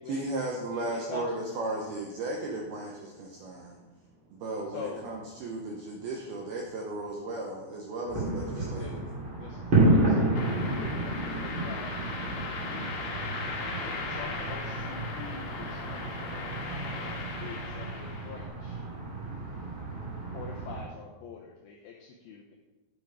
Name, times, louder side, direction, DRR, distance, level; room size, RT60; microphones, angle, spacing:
voice 1, 0.1-3.8 4.3-9.0, right 2 dB, 80° right, -1 dB, 2.3 m, -35 dB
voice 2, 0.7-1.3 4.7-5.0 8.5-9.0 9.4-10.4 11.0-12.8 13.8-16.3 17.4-18.8 20.3-22.6, left 5 dB, 85° left, -1 dB, 2.2 m, -44 dB
voice 3, 3.1-4.7 5.4-6.2 7.3-8.0, right 1 dB, 50° right, -3 dB, 3.5 m, -62 dB
sound 1, 8.1-20.8, right 2 dB, 35° right, 2.0 m, -31 dB
sound 2, 10.4-18.5, left 3 dB, 60° left, 2.4 m, -38 dB
9.9 x 7.0 x 4.9 m, 1.1 s
omnidirectional pair, 5.5 m